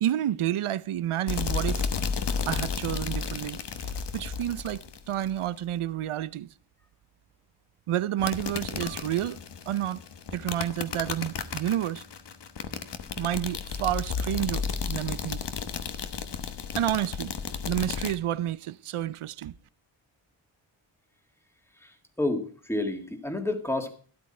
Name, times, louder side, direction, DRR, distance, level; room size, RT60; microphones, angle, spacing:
voice 1, 0.0-1.9 2.5-6.5 7.9-9.4 9.7-10.0 10.3-12.0 13.2-15.5 16.7-17.3 17.7-19.5, right 12 dB, 85° right, 0.7 m, -30 dB
sound 1, 1.3-5.5 8.2-18.1, left 6 dB, 55° left, 1.1 m, -33 dB
voice 2, 21.8-23.9, left 2 dB, 5° left, 1.8 m, -30 dB
12.5 x 12.0 x 4.3 m
wide cardioid pair, 165°, 49 cm